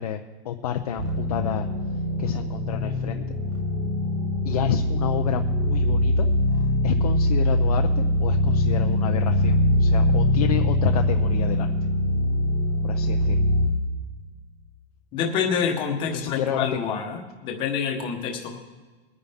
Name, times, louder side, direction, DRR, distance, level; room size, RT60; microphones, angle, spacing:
voice 1, 0.0-1.7 2.2-3.3 4.4-6.3 6.8-11.7 12.8-13.4 16.1-16.7, left 9 dB, 35° left, 5 dB, 0.5 m, -29 dB
sound 1, 1.0-13.7, left 1 dB, 25° right, 2.5 m, -22 dB
voice 2, 15.1-18.5, left 6 dB, 15° left, 2 dB, 1.0 m, -27 dB
21.0 x 9.7 x 3.5 m, 1.4 s
supercardioid pair, 180°, 32 cm